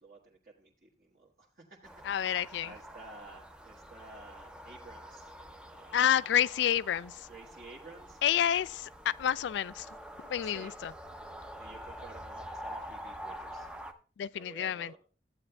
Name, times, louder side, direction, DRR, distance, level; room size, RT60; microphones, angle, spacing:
voice 1, 0.0-1.8 2.1-5.3 5.7-6.0 7.3-8.2 10.4-10.7 11.6-13.7 14.3-15.0, right 3 dB, 50° right, 1.2 m, -52 dB
sound 1, 1.8-13.9, equal, 5° right, 0.5 m, -47 dB
voice 2, 2.0-2.7 5.9-7.3 8.2-9.9 10.3-10.9 14.2-15.0, left 9 dB, 75° left, 0.3 m, -29 dB
14.0 x 8.7 x 2.2 m
head